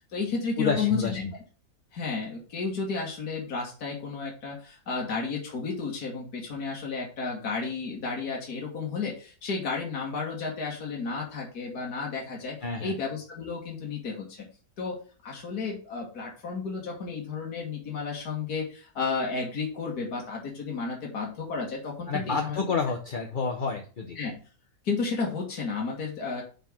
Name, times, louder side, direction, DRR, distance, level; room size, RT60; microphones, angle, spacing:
voice 1, 0.0-1.2 1.9-14.5 14.8-22.6 24.2-24.4 24.8-26.4, left 4 dB, 60° left, -2 dB, 2.2 m, -32 dB
voice 2, 0.6-1.3 12.6-12.9 22.1-24.2, left 4 dB, 40° left, 3 dB, 0.7 m, -29 dB
6.6 x 3.9 x 6.2 m, 0.37 s
omnidirectional pair, 1.9 m